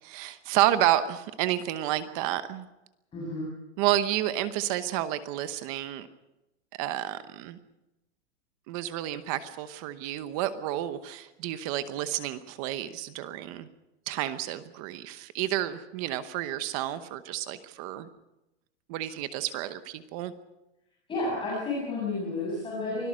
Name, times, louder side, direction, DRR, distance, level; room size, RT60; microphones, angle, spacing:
voice 1, 0.0-2.7 3.8-6.1 6.8-7.6 8.7-13.7 14.1-18.1 18.9-20.3, right 13 dB, 30° right, 12 dB, 1.0 m, -30 dB
voice 2, 3.1-3.5 21.1-23.1, left 2 dB, 15° left, -5 dB, 7.1 m, -31 dB
24.5 x 18.0 x 6.4 m, 0.95 s
supercardioid pair, 160°, 35 cm